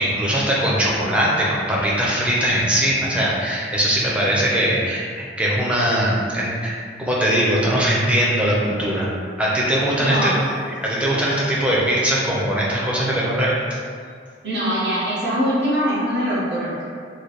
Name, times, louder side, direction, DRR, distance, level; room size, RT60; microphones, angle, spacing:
voice 1, 0.0-9.1 9.4-13.8, equal, 5° right, -6 dB, 0.6 m, -21 dB
voice 2, 10.0-10.3 14.4-16.8, equal, 75° right, -9 dB, 1.2 m, -22 dB
3.2 x 2.2 x 4.1 m, 2.2 s
head